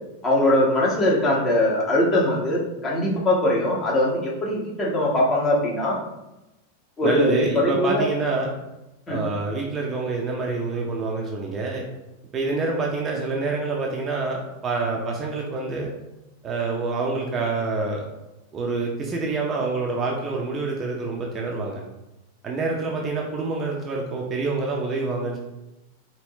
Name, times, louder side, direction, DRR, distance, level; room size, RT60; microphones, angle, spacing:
voice 1, 0.2-6.0 7.0-8.0 9.1-9.2, left 1 dB, 25° left, -4 dB, 1.6 m, -21 dB
voice 2, 7.0-8.5 9.1-11.8 12.3-15.9 16.4-18.0 18.5-21.8 22.4-25.4, right 3 dB, 25° right, -1 dB, 0.7 m, -27 dB
4.9 x 3.0 x 3.1 m, 0.96 s
figure-of-eight pair, 90°, 0 cm